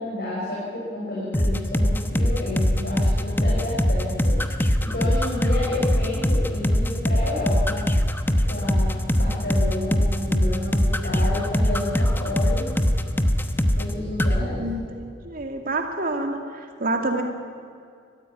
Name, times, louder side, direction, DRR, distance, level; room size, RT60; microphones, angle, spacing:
voice 1, 0.0-7.9 8.5-12.6 13.7-14.7, left 2 dB, 55° left, -6 dB, 6.2 m, -30 dB
sound 1, 1.3-13.9 14.2-14.4, equal, 10° left, 1.1 m, -21 dB
voice 2, 14.4-17.2, right 2 dB, 50° right, 4 dB, 2.3 m, -28 dB
21.0 x 15.0 x 9.9 m, 2.4 s
head